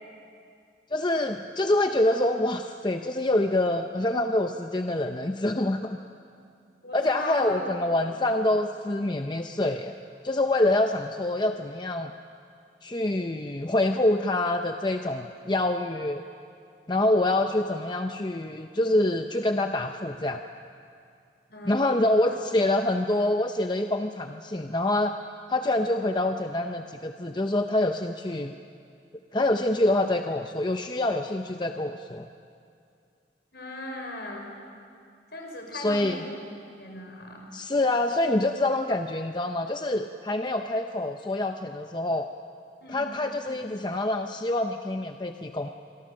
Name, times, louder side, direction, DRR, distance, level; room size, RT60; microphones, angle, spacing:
voice 1, 0.9-6.0 6.9-10.0 10.2-12.1 12.8-16.2 16.9-20.4 21.7-25.1 25.5-28.5 29.3-32.3 35.7-36.2 37.5-42.3 42.9-45.7, left 1 dB, 25° left, 5 dB, 0.7 m, -26 dB
voice 2, 6.8-7.7 8.0-8.2 21.5-22.4 33.5-34.5 35.3-36.4 36.8-37.5 42.8-43.1 43.5-43.8, left 1 dB, 65° left, 2 dB, 4.9 m, -38 dB
26.5 x 23.5 x 6.5 m, 2.4 s
head